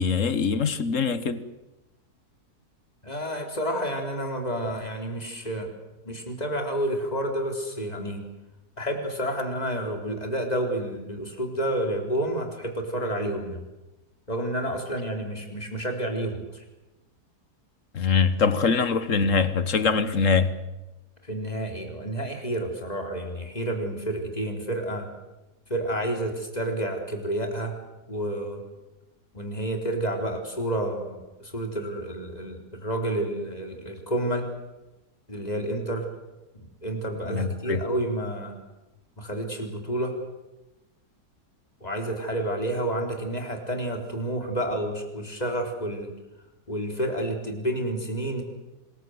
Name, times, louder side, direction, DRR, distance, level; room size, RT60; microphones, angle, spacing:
voice 1, 0.0-1.4 17.9-20.5 37.3-37.8, left 5 dB, 55° left, 1.6 m, -23 dB
voice 2, 3.0-5.7 6.0-8.2 8.8-13.6 14.3-16.6 21.2-25.1 25.7-27.7 28.1-28.6 29.3-34.5 35.3-36.1 36.8-38.6 39.2-40.1 41.8-46.1 46.7-48.4, right 1 dB, 25° left, 4.0 m, -30 dB
26.0 x 20.5 x 8.0 m
omnidirectional pair, 1.7 m